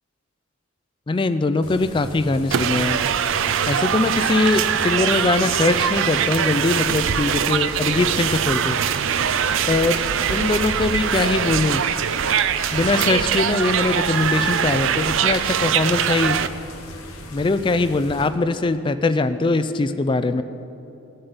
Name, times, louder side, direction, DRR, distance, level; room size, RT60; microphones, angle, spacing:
voice 1, 1.1-3.0 3.7-8.8 9.7-10.0 10.3-11.8 12.7-16.4 17.3-20.4, left 3 dB, 25° left, 11 dB, 0.3 m, -21 dB
sound 1, 1.6-18.3, left 2 dB, 90° left, 1.1 m, -39 dB
sound 2, 2.5-16.5, right 8 dB, 65° right, 0.4 m, -22 dB
17.0 x 7.8 x 4.0 m, 2.7 s
head